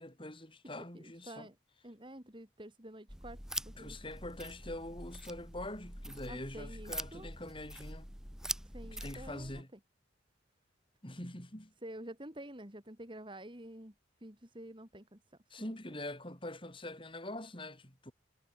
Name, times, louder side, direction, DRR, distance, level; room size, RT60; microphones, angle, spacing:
voice 1, 0.0-1.5 3.8-8.1 8.8-9.7 11.0-11.7 15.5-18.1, left 1 dB, 25° left, 5.9 m, -44 dB
voice 2, 0.9-1.5 1.8-3.4 3.6-4.0 6.3-7.3 8.7-9.6 11.8-13.9 14.2-15.2 15.6-15.7, right 1 dB, 25° right, 3.0 m, -49 dB
sound 1, 3.1-9.6, right 1 dB, 5° right, 3.3 m, -44 dB
head